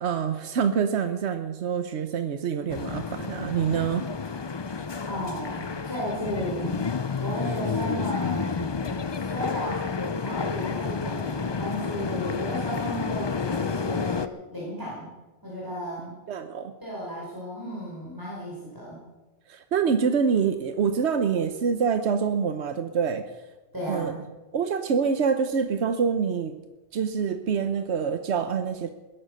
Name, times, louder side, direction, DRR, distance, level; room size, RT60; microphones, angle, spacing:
voice 1, 0.0-4.1 16.3-16.7 19.5-23.2 23.9-24.1 24.5-26.6 26.9-28.9, right 6 dB, 85° right, 9 dB, 1.2 m, -26 dB
sound 1, 2.7-14.3, left 5 dB, 30° left, 0.5 m, -30 dB
voice 2, 5.0-6.9 7.2-15.1 15.4-16.1 16.8-19.0 23.7-24.2, equal, 20° right, -6 dB, 5.1 m, -34 dB
20.5 x 11.0 x 6.4 m, 1.1 s
omnidirectional pair, 1.1 m